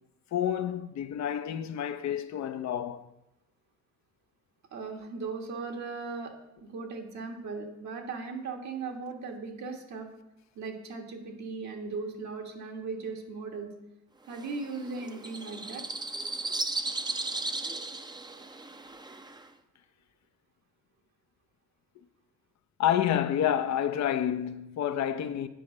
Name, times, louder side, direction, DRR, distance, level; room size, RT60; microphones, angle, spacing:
voice 1, 0.3-3.1 22.8-25.5, left 10 dB, 65° left, 0.7 m, -29 dB
voice 2, 4.7-10.1 10.6-13.7 14.3-15.8, right 4 dB, 65° right, 1.8 m, -38 dB
sound 1, 14.3-19.5, right 2 dB, 15° right, 0.6 m, -36 dB
9.1 x 4.8 x 6.5 m
cardioid pair, 90°, 30 cm